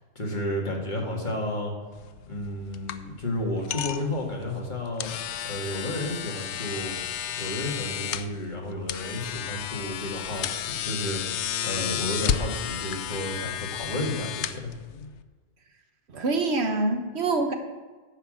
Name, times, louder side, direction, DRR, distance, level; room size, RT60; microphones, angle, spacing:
voice 1, 0.2-1.7 2.3-5.1 5.4-6.9 7.4-11.2 11.6-14.7, left 1 dB, 40° left, -1 dB, 2.0 m, -32 dB
sound 1, 1.9-15.2, left 9 dB, 75° left, 0.9 m, -33 dB
voice 2, 16.1-17.5, right 3 dB, 60° right, 5 dB, 1.4 m, -25 dB
10.0 x 5.9 x 7.5 m, 1.4 s
omnidirectional pair, 1.2 m